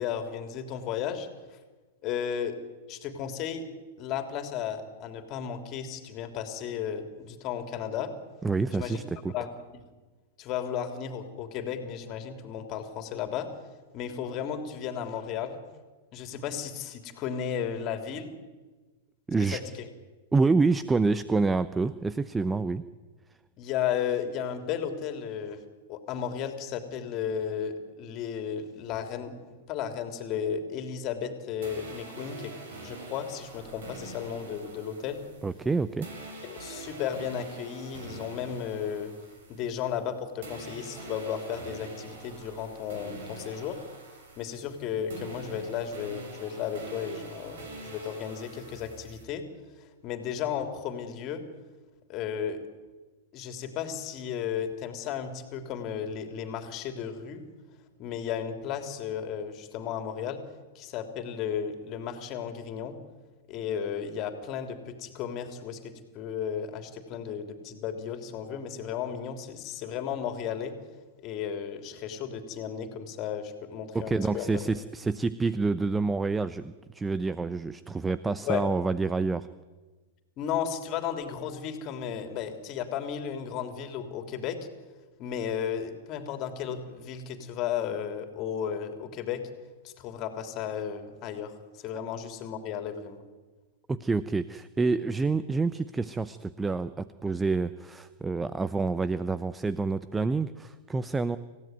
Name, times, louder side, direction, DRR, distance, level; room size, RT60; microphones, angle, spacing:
voice 1, 0.0-1.6 2.0-2.6 2.9-3.6 4.0-8.1 8.7-9.0 9.3-9.5 10.4-13.5 13.9-15.6 16.1-18.3 19.4-19.9 23.6-25.6 25.9-32.5 32.8-35.2 36.4-39.2 39.5-43.8 44.4-49.4 49.8-51.4 52.1-52.6 53.3-57.4 58.0-60.4 60.7-62.9 63.5-70.7 71.2-74.6 78.4-78.7 80.4-84.6 85.2-89.4 89.8-93.2, left 8 dB, 40° left, 7 dB, 3.3 m, -34 dB
voice 2, 8.4-9.3 19.3-19.6 20.3-22.8 35.4-36.1 73.9-79.5 93.9-101.4, right 3 dB, 10° right, 15 dB, 0.8 m, -28 dB
sound 1, 31.6-40.1 40.4-49.2, right 2 dB, 65° right, 6.7 m, -45 dB
27.5 x 16.5 x 9.4 m, 1.3 s
figure-of-eight pair, 100°, 0 cm